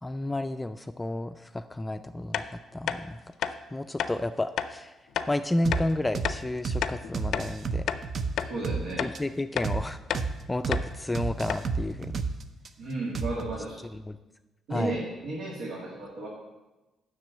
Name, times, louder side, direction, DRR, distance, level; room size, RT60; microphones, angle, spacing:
voice 1, 0.0-3.2 3.7-4.9 5.3-7.8 9.0-10.0 10.5-12.2 14.1-14.2 14.7-15.0, left 1 dB, 15° left, 9 dB, 0.4 m, -31 dB
sound 1, 2.3-2.5 2.9-3.0 3.4-3.6 4.0-4.1 4.6-4.7 5.2-5.3 5.7-5.9 6.2-6.4 6.8-7.5 7.9-8.0 8.4-8.5 9.0-9.2 9.6-9.7 10.1-10.3 10.7-10.9 11.2-11.3 11.5-11.7, left 9 dB, 75° left, 0.4 m, -30 dB
sound 2, 5.6-5.8 6.1-6.3 6.6-6.8 7.1-8.8 9.1-9.2 9.6-9.8 10.1-10.3 10.6-10.8 11.1-12.7 13.1-13.6, right 4 dB, 55° right, 0.7 m, -30 dB
voice 2, 8.4-9.1 12.8-13.8 14.7-16.3, right 2 dB, 80° right, -4 dB, 1.9 m, -33 dB
7.4 x 6.1 x 7.7 m, 1.1 s
cardioid pair, 90°, 0 cm